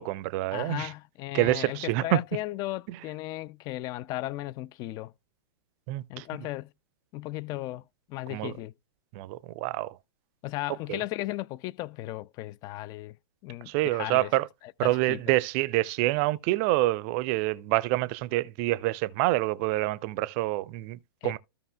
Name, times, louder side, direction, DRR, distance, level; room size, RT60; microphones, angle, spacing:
voice 1, 0.0-0.9 1.3-2.2 5.9-6.2 8.3-8.5 9.2-9.9 10.9-11.0 13.7-14.5 14.8-21.4, right 18 dB, 35° right, 0.5 m, -27 dB
voice 2, 0.5-5.1 6.1-6.7 7.1-7.8 8.1-8.7 10.4-13.1 13.4-14.3 14.6-15.3 21.2-21.4, left 17 dB, 30° left, 0.4 m, -36 dB
15.0 x 5.3 x 2.3 m
figure-of-eight pair, 105°, 13 cm